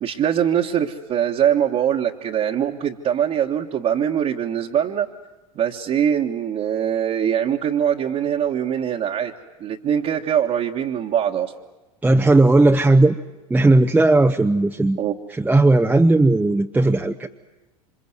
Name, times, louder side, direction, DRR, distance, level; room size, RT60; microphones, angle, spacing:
voice 1, 0.0-5.1 5.6-9.3 9.6-11.5 15.0-15.2, right 9 dB, 40° right, -2 dB, 1.6 m, -22 dB
voice 2, 12.0-13.2 13.5-15.0 15.3-17.3, right 2 dB, 10° right, 3 dB, 0.9 m, -16 dB
28.0 x 26.0 x 8.0 m, 1.1 s
hypercardioid pair, 80°, 18 cm